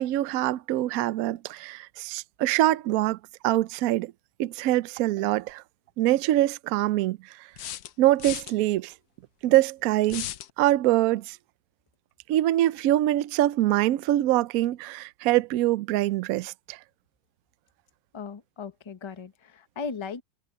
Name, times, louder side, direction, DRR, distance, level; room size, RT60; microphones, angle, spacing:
voice 1, 0.0-3.2 3.4-4.1 4.4-5.6 6.0-7.2 8.0-8.9 9.4-10.3 10.6-11.4 12.3-16.8, right 15 dB, 70° right, 0.8 m, -24 dB
sound 1, 5.5-5.6 7.6-8.5 10.1-10.5, left 12 dB, 65° left, 1.0 m, -35 dB
voice 2, 18.1-20.2, left 5 dB, 35° left, 0.4 m, -37 dB
omnidirectional pair, 2.0 m